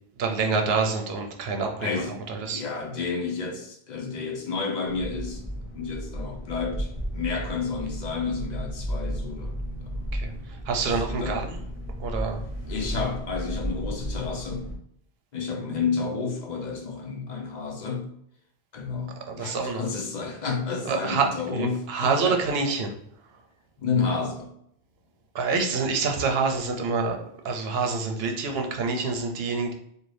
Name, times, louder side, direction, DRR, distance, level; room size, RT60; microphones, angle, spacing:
voice 1, 0.2-2.0 2.3-2.6 10.1-10.3 10.7-11.6 12.0-12.4 19.3-19.8 20.9-21.3 21.5-23.0 25.3-27.2 27.4-29.7, right 4 dB, 75° right, 3 dB, 0.8 m, -26 dB
voice 2, 1.7-2.1 2.5-5.4 5.7-9.6 9.8-10.0 10.8-11.4 12.7-14.7 15.3-18.1 18.7-22.4 23.8-24.5, left 5 dB, 55° left, 2 dB, 0.6 m, -31 dB
sound 1, 4.9-14.7, equal, 15° right, 1.1 m, -34 dB
2.6 x 2.3 x 3.2 m, 0.71 s
omnidirectional pair, 1.1 m